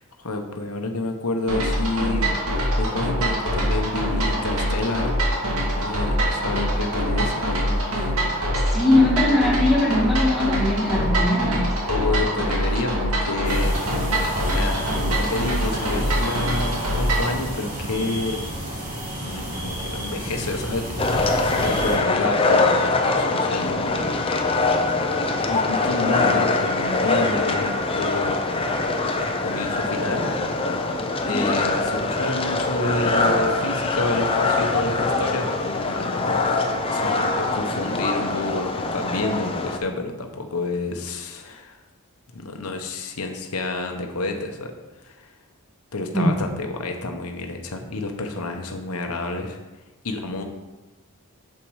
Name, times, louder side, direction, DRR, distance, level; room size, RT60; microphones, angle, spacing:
voice 1, 0.0-2.3 2.5-5.1 5.6-8.1 11.9-13.7 14.4-18.4 19.2-24.1 25.4-28.3 29.4-30.3 31.2-36.4 36.9-41.8 42.3-44.7 45.0-45.3 45.9-49.6 50.0-50.4, left 2 dB, 80° left, 3 dB, 1.0 m, -29 dB
sound 1, 1.5-17.3, equal, 75° right, 2.3 m, -24 dB
voice 2, 8.5-11.7 31.3-31.4 46.1-46.3, left 1 dB, ahead, -5 dB, 1.8 m, -21 dB
sound 2, 13.4-22.0, equal, 40° right, 2.0 m, -31 dB
sound 3, 21.0-39.8, left 3 dB, 25° left, 0.7 m, -23 dB
7.2 x 6.7 x 4.8 m, 1.1 s
head